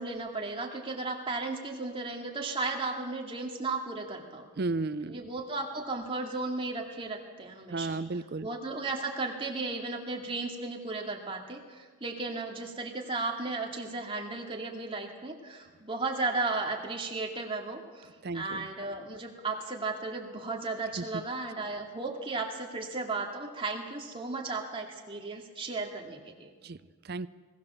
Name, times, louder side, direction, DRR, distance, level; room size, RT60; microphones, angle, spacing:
voice 1, 0.0-4.5 5.1-8.0 8.4-26.5, right 3 dB, 25° right, 1 dB, 2.3 m, -35 dB
voice 2, 4.6-5.2 7.7-8.5 18.2-18.7 21.0-21.2 26.6-26.8 27.1-27.3, right 3 dB, 45° right, 16 dB, 0.5 m, -33 dB
21.0 x 18.5 x 7.1 m, 1.5 s
head